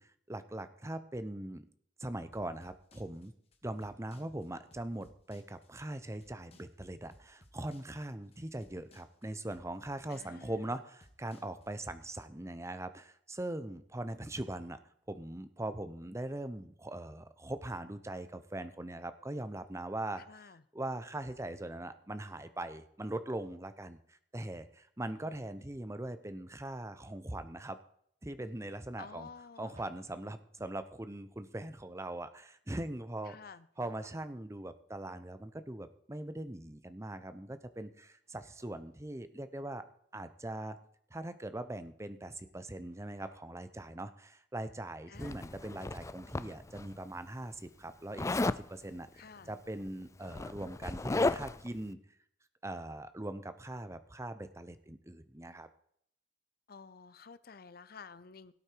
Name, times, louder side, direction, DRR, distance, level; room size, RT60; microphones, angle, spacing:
voice 1, 0.0-1.7 2.0-3.3 3.6-14.8 15.1-27.8 28.2-29.3 29.6-33.4 33.8-39.8 40.1-40.8 41.1-52.0 52.6-55.7, right 1 dB, 15° right, 11 dB, 0.8 m, -41 dB
sound 1, 2.3-11.9, left 1 dB, 35° left, 1.8 m, -62 dB
voice 2, 10.1-10.7 20.2-20.6 29.0-29.8 33.3-33.7 45.1-45.5 49.2-49.5 56.7-58.5, left 5 dB, 55° left, 15 dB, 0.7 m, -51 dB
sound 2, 27.9-28.1 28.8-28.9 29.1-29.2 29.4-30.3 33.7-34.4 37.3-37.4 37.9-39.1 42.4-42.5 42.7-43.7, right 1 dB, 40° right, 4.4 m, -63 dB
Zipper (clothing), 45.2-46.8 48.2-48.6 49.8-49.9 50.2-51.7, left 2 dB, 15° left, 0.4 m, -34 dB
17.5 x 8.5 x 4.7 m, 0.68 s
head